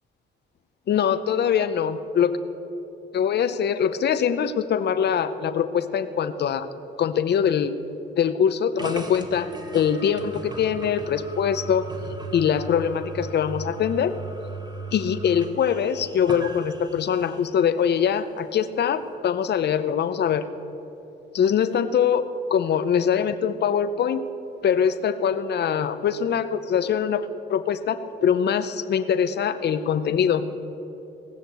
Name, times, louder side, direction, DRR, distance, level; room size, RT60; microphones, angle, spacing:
voice 1, 0.9-2.4 3.1-6.7 7.0-7.7 8.2-9.5 9.7-11.9 12.3-14.1 14.9-20.5 21.3-24.2 24.6-30.4, left 8 dB, 55° left, 12 dB, 0.7 m, -23 dB
sound 1, 8.8-17.5, right 3 dB, 20° right, 1.3 m, -37 dB
18.0 x 6.6 x 7.9 m, 3.0 s
cardioid pair, 90°, 20 cm